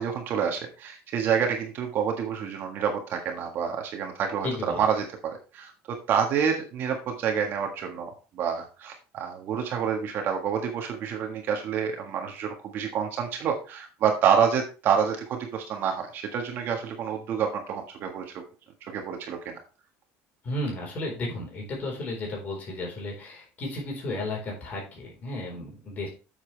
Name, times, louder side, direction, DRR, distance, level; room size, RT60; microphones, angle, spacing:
voice 1, 0.0-18.2 18.8-19.6, right 7 dB, 45° right, 3 dB, 1.6 m, -28 dB
voice 2, 4.4-4.8 20.4-26.1, left 1 dB, 30° left, -2 dB, 4.3 m, -33 dB
8.4 x 7.3 x 3.3 m, 0.33 s
cardioid pair, 160°, 5 cm